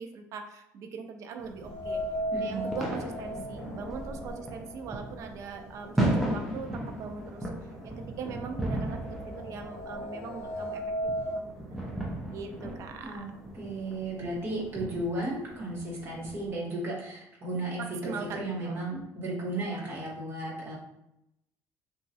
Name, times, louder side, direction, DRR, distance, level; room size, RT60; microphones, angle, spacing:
voice 1, 0.0-2.0 2.4-7.5 7.8-11.8 12.3-13.3 17.8-18.7, right 5 dB, 50° right, 5 dB, 0.4 m, -41 dB
sound 1, 1.4-16.5, right 1 dB, ahead, 0.5 m, -36 dB
sound 2, 1.6-5.7 6.0-6.1 7.1-7.2 7.6-11.4, equal, 60° left, 0.7 m, -37 dB
voice 2, 2.3-2.7 13.0-13.3 13.5-20.7, right 2 dB, 35° right, -5 dB, 1.1 m, -34 dB
3.0 x 2.3 x 2.7 m, 0.83 s
cardioid pair, 160°, 7 cm